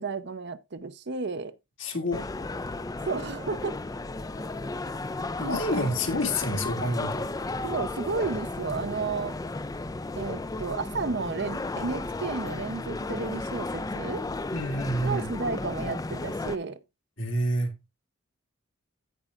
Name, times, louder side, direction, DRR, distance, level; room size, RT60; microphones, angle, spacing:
voice 1, 0.0-1.5 3.1-3.8 5.4-5.8 7.6-9.4 10.2-14.2 15.0-16.8, right 4 dB, 55° right, 0.6 m, -32 dB
voice 2, 1.8-2.2 5.4-7.3 14.5-15.3 17.2-17.8, left 1 dB, 60° left, 2.0 m, -28 dB
sound 1, 2.1-16.6, left 2 dB, 15° left, 0.4 m, -34 dB
16.0 x 5.4 x 2.4 m
head